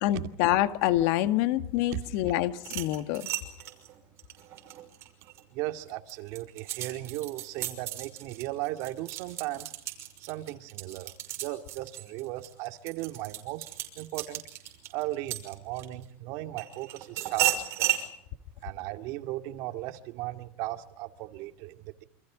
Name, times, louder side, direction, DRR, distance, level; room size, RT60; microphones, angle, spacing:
voice 1, 0.0-3.3, left 14 dB, 70° left, 1.9 m, -26 dB
sound 1, 2.6-5.4 5.9-16.0 16.6-18.1, right 13 dB, 45° right, 5.8 m, -34 dB
voice 2, 5.5-9.7 10.2-11.1 11.4-13.7 14.0-14.4 14.9-17.9 18.6-22.0, right 16 dB, 60° right, 2.4 m, -36 dB
29.0 x 27.0 x 5.2 m
supercardioid pair, 145°, 6 cm